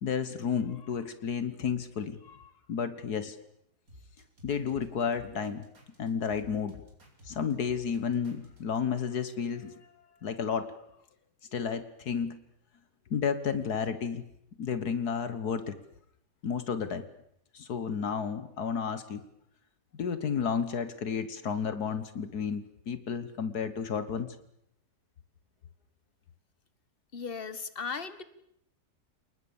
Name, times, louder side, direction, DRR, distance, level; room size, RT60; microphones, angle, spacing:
voice 1, 0.0-3.4 4.4-5.7 6.0-6.8 7.3-9.8 10.2-10.7 11.5-12.4 13.1-14.2 14.6-15.8 16.4-17.1 17.5-19.2 19.9-24.4, left 6 dB, 70° left, 12 dB, 1.8 m, -32 dB
sound 1, 3.9-8.8, equal, 55° right, 5.1 m, -54 dB
voice 2, 27.1-28.2, left 5 dB, 35° left, 13 dB, 1.6 m, -36 dB
29.5 x 20.0 x 7.2 m, 0.76 s
omnidirectional pair, 1.8 m